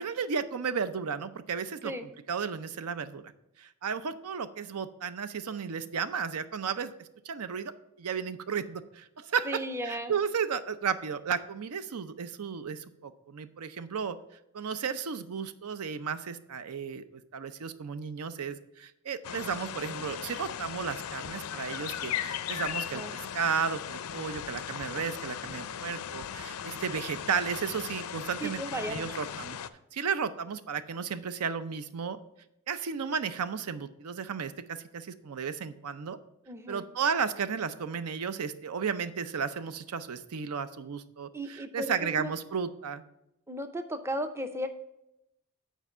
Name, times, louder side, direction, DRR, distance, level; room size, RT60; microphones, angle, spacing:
voice 1, 0.0-3.3 3.6-7.7 8.0-14.2 14.5-28.6 28.9-29.6 29.9-32.2 32.7-36.2 36.7-43.0, right 6 dB, 85° right, 13 dB, 0.5 m, -34 dB
voice 2, 9.5-10.1 22.9-23.1 28.4-29.1 36.5-36.8 41.3-42.3 43.5-44.7, right 1 dB, 10° right, 8 dB, 0.5 m, -35 dB
sound 1, 19.2-29.7, left 9 dB, 85° left, 0.4 m, -38 dB
7.4 x 4.5 x 6.6 m, 0.84 s
head